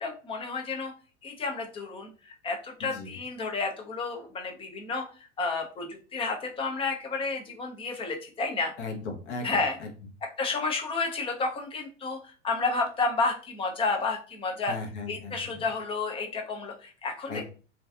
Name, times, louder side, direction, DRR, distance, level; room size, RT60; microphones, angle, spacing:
voice 1, 0.0-0.9 1.2-5.0 5.4-8.7 9.4-9.8 10.4-12.2 12.4-14.7 15.1-17.4, left 3 dB, 15° left, 3 dB, 0.5 m, -31 dB
voice 2, 2.8-3.1 8.8-9.9 14.7-15.6 17.3-17.4, left 3 dB, 65° left, 2 dB, 0.9 m, -37 dB
2.5 x 2.3 x 2.3 m, 0.37 s
hypercardioid pair, 90°, 37 cm